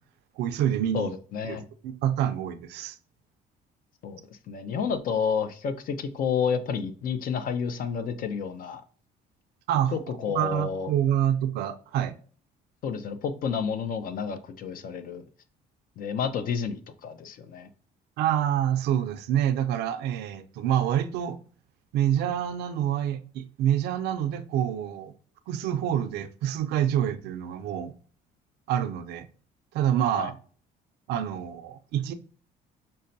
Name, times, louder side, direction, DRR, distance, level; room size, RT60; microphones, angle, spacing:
voice 1, 0.4-1.1 1.4-1.6 1.8-3.0 9.7-12.2 18.2-21.4 21.9-25.1 25.5-27.9 28.7-29.3 29.7-30.4 31.1-32.1, right 10 dB, 80° right, 0.4 m, -27 dB
voice 2, 0.9-1.6 4.0-4.2 4.5-8.8 9.9-10.9 12.8-15.2 16.0-17.7 30.2-30.3, left 6 dB, 55° left, 0.5 m, -30 dB
5.4 x 2.1 x 2.6 m
cardioid pair, 110°, 17 cm